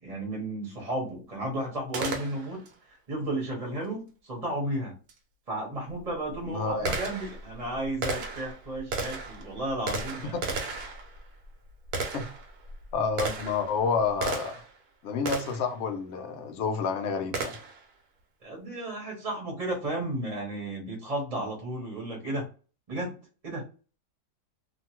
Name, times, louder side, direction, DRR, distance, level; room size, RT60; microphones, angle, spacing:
voice 1, 0.0-2.6 3.1-4.9 5.5-10.6 18.4-22.4 22.9-23.2 23.4-23.6, right 1 dB, 30° right, 0.8 m, -33 dB
Gunshot gunfire, 1.9-2.7 5.1-5.2 5.9-14.8 15.3-15.7 17.3-17.9, right 3 dB, 85° right, 1.2 m, -35 dB
voice 2, 6.5-6.9 10.3-10.4 12.1-12.3 12.9-14.6 15.0-17.6, left 5 dB, 65° left, 0.8 m, -29 dB
2.9 x 2.2 x 2.8 m
omnidirectional pair, 1.6 m